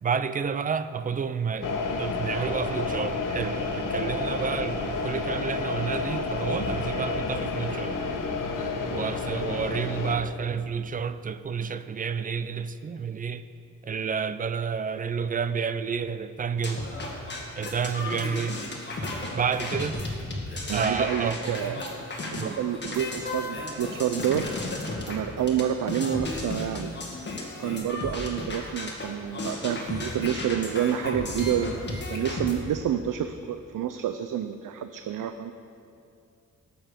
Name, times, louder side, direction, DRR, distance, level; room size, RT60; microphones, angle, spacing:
voice 1, 0.0-7.9 8.9-13.5 13.8-16.8 17.6-18.6 19.3-20.0 20.7-21.8 22.4-22.6, right 6 dB, 25° right, 12 dB, 0.4 m, -30 dB
sound 1, 1.6-10.2, left 3 dB, 80° left, 1.3 m, -30 dB
sound 2, 16.6-25.6 25.9-32.5, left 2 dB, 35° left, 1.9 m, -34 dB
voice 2, 20.7-22.1 22.3-24.4 24.7-26.9 27.6-35.5, right 9 dB, 75° right, 8 dB, 0.5 m, -29 dB
18.5 x 6.9 x 5.1 m, 2.5 s
wide cardioid pair, 145°, 32 cm